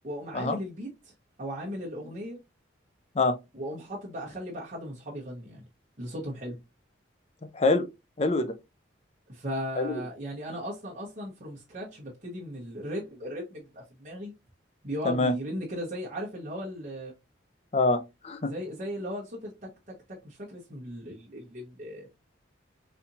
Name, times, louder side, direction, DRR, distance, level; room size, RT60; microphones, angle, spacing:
voice 1, 0.0-1.1 1.4-2.4 3.5-5.7 6.0-6.6 9.3-14.3 14.8-17.1 18.4-22.1, equal, 40° right, 1.1 m, -37 dB
voice 2, 7.5-7.9 8.2-8.5 9.8-10.0 15.0-15.3 17.7-18.5, left 2 dB, 35° left, 0.5 m, -25 dB
4.2 x 2.8 x 2.6 m
head